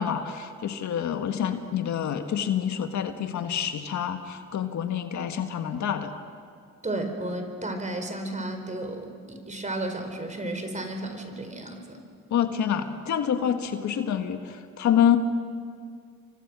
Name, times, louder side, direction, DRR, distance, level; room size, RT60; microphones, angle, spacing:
voice 1, 0.0-6.2 12.3-15.2, left 9 dB, 70° left, 7 dB, 1.8 m, -27 dB
voice 2, 6.8-12.0, right 1 dB, 25° right, 5 dB, 4.4 m, -33 dB
30.0 x 24.0 x 6.3 m, 2.2 s
cardioid pair, 90°, 30 cm